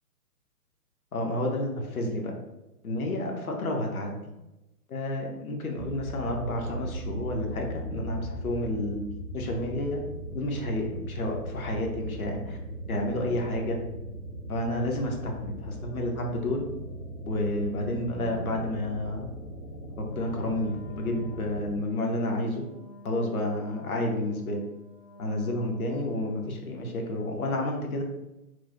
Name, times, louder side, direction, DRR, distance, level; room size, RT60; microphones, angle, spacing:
voice 1, 1.1-2.3 2.8-4.2 4.9-9.0 9.3-10.0 10.3-12.6 12.9-13.8 14.5-16.6 17.3-19.3 20.0-22.6 23.0-24.6 25.2-28.0, left 1 dB, 60° left, 1 dB, 0.9 m, -30 dB
sound 1, 5.8-21.8, equal, 5° right, 0.4 m, -39 dB
Wind instrument woodwind instrument, 20.0-26.7, left 3 dB, 90° left, 0.9 m, -50 dB
3.1 x 2.1 x 3.9 m, 0.97 s
figure-of-eight pair, 130°, 47 cm